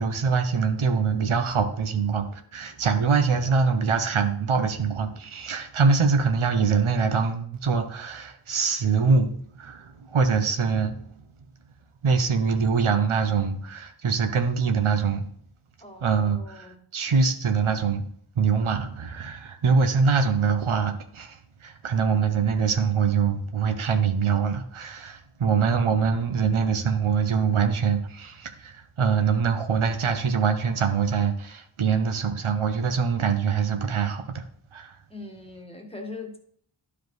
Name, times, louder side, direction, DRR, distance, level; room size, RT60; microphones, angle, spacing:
voice 1, 0.0-11.0 12.0-15.3 16.0-16.7 16.9-18.0 18.4-34.4 34.7-34.9, right 5 dB, 85° right, 7 dB, 0.8 m, -24 dB
voice 2, 15.8-16.8 35.1-36.4, left 3 dB, 10° left, 3 dB, 1.4 m, -41 dB
11.0 x 4.9 x 3.1 m, 0.62 s
wide cardioid pair, 45°, 48 cm